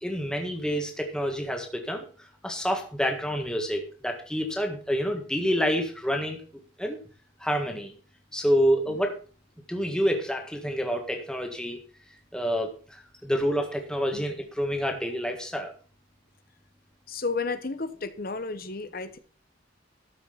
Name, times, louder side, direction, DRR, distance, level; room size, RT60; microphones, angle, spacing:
voice 1, 0.0-2.0 2.4-6.4 6.8-7.0 7.4-7.9 8.3-9.1 9.7-11.8 12.3-15.7, equal, 5° left, 3 dB, 1.6 m, -28 dB
voice 2, 17.1-19.2, left 4 dB, 45° left, 11 dB, 1.0 m, -32 dB
13.0 x 5.9 x 5.8 m, 0.39 s
head